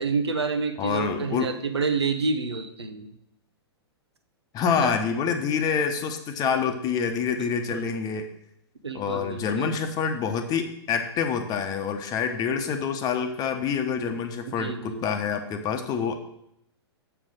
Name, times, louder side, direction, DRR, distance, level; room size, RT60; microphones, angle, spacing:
voice 1, 0.0-3.1 4.7-4.9 7.4-7.9 8.8-9.7 14.5-15.1, right 4 dB, 75° right, 8 dB, 1.0 m, -29 dB
voice 2, 0.8-1.5 4.5-8.3 8.9-16.2, left 6 dB, 30° left, 7 dB, 1.0 m, -27 dB
7.1 x 5.6 x 6.6 m, 0.76 s
figure-of-eight pair, 105°, 14 cm